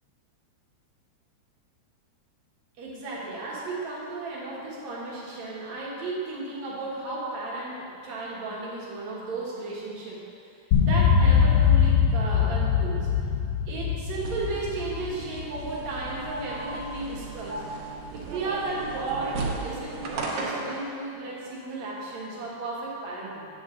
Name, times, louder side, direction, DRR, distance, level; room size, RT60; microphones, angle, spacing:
voice 1, 2.8-10.2 10.8-13.1 13.7-17.6 18.1-23.5, right 3 dB, 65° right, -5 dB, 2.6 m, -34 dB
sound 1, 10.7-16.1, left 7 dB, 70° left, 1.8 m, -22 dB
sound 2, 14.2-20.8, right 3 dB, 80° right, 2.5 m, -35 dB
8.3 x 8.0 x 3.8 m, 2.5 s
omnidirectional pair, 3.4 m